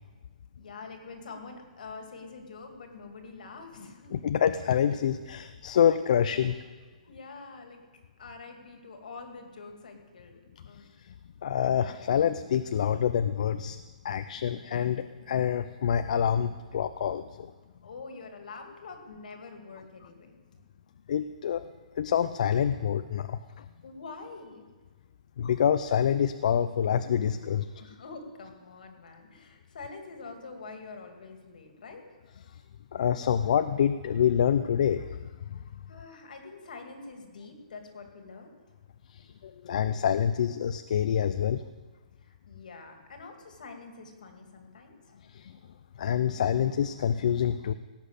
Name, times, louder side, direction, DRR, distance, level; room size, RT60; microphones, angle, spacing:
voice 1, 0.6-4.3 6.8-10.9 17.8-20.4 23.8-24.7 27.8-32.0 35.9-38.5 42.2-45.0, left 4 dB, 75° left, 4 dB, 2.6 m, -45 dB
voice 2, 4.1-6.6 11.4-17.5 21.1-21.7 22.0-23.6 25.4-27.8 32.9-35.1 35.5-35.6 39.1-41.6 45.3-45.6 46.0-47.7, left 8 dB, 60° left, 11 dB, 0.5 m, -27 dB
17.5 x 6.2 x 8.3 m, 1.3 s
hypercardioid pair, 155°, 4 cm